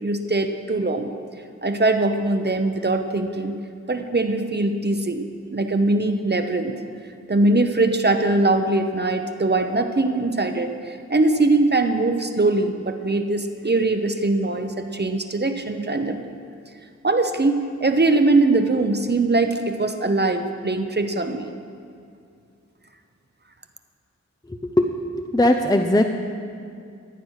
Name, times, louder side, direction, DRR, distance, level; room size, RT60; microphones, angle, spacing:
voice 1, 0.0-1.1 1.6-3.6 3.9-5.2 5.5-6.7 7.3-16.3 17.0-21.5, right 2 dB, 35° right, 6 dB, 0.9 m, -21 dB
voice 2, 24.5-24.9 25.1-26.1, left 1 dB, 15° left, 4 dB, 0.7 m, -19 dB
14.5 x 9.0 x 6.5 m, 2.4 s
wide cardioid pair, 70°, 29 cm